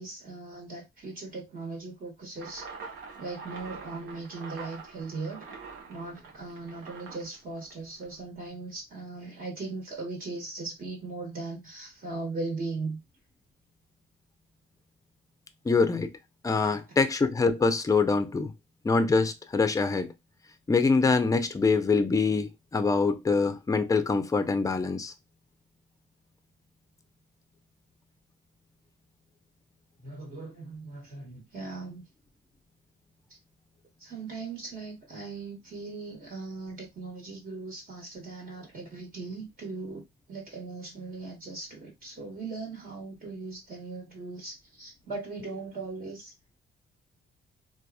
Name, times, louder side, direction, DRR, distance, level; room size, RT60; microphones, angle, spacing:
voice 1, 0.0-2.6 3.2-5.5 5.9-13.0 30.0-32.0 34.0-46.3, right 3 dB, 45° right, 1.3 m, -39 dB
sound 1, 2.4-8.2, right 5 dB, 90° right, 0.8 m, -45 dB
voice 2, 15.7-16.1 16.4-18.5 18.8-20.1 20.7-25.1, left 4 dB, 15° left, 0.4 m, -24 dB
2.8 x 2.3 x 2.3 m
cardioid pair, 90°, 20 cm